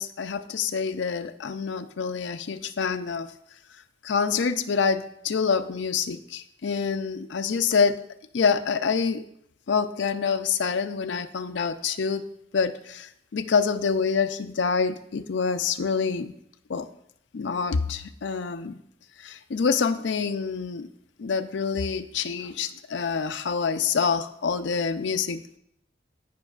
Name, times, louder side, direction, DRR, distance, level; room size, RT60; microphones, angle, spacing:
voice 1, 0.0-3.3 4.0-8.0 8.3-9.2 9.7-12.2 12.5-16.3 16.7-16.9 17.3-18.8 19.2-20.9 21.2-25.6, left 5 dB, 90° left, 10 dB, 0.5 m, -26 dB
14.0 x 5.3 x 2.4 m, 0.73 s
head